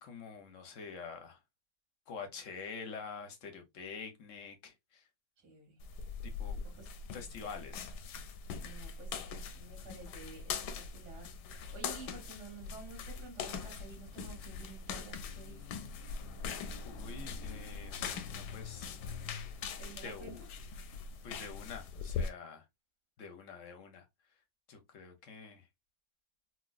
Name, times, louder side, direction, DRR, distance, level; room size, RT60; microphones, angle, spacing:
voice 1, 0.0-1.4 2.1-5.0 6.4-6.6 7.1-7.9 16.8-18.0 18.3-18.9 20.0-20.4 21.2-22.6 23.2-24.0 24.7-25.7, left 5 dB, 60° left, 0.9 m, -46 dB
voice 2, 5.4-5.8 6.6-6.9 8.6-15.8 19.8-20.4, right 3 dB, 65° right, 2.3 m, -52 dB
sound 1, 5.8-22.3, left 5 dB, 75° left, 1.1 m, -42 dB
4.4 x 2.2 x 2.3 m
omnidirectional pair, 1.9 m